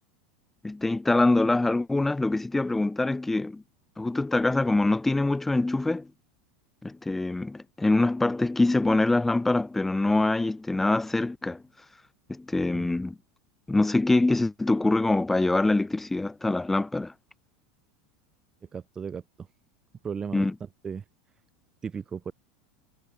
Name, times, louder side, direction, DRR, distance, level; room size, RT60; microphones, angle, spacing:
voice 1, 0.6-3.6 4.0-6.1 6.8-11.6 12.3-13.2 13.7-17.1 20.3-20.5, left 2 dB, 5° left, 1.7 m, -24 dB
voice 2, 12.7-13.1 18.7-19.5 20.0-20.5 20.8-21.0 21.8-22.3, right 6 dB, 20° right, 2.4 m, -36 dB
supercardioid pair, 135°, 3 cm